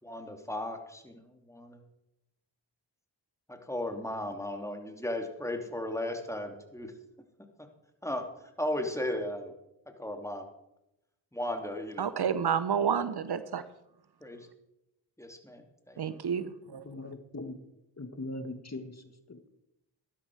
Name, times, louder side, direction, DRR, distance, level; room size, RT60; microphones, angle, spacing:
voice 1, 0.0-1.8 3.5-6.9 8.0-8.2 8.6-9.5 10.0-10.5 11.3-12.1 14.2-14.5 15.2-16.0, left 1 dB, 5° left, 4 dB, 2.9 m, -36 dB
voice 2, 12.0-13.6 16.0-16.8, right 7 dB, 55° right, 14 dB, 0.9 m, -30 dB
voice 3, 16.7-17.5 18.0-19.0 19.3-19.5, left 2 dB, 35° left, 8 dB, 1.8 m, -40 dB
11.5 x 11.5 x 4.9 m, 0.86 s
supercardioid pair, 40°, 47 cm